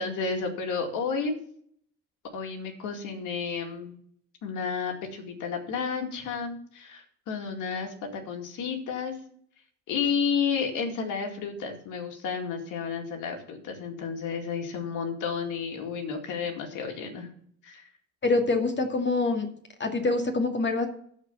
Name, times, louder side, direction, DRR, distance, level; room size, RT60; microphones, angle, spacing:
voice 1, 0.0-1.4 2.3-4.0 4.4-9.1 9.9-17.3 17.6-17.9, left 6 dB, 90° left, 3 dB, 2.3 m, -31 dB
voice 2, 18.2-19.5 19.8-20.9, left 3 dB, 35° left, 3 dB, 2.3 m, -25 dB
14.0 x 4.6 x 7.1 m, 0.62 s
cardioid pair, 90°, 30 cm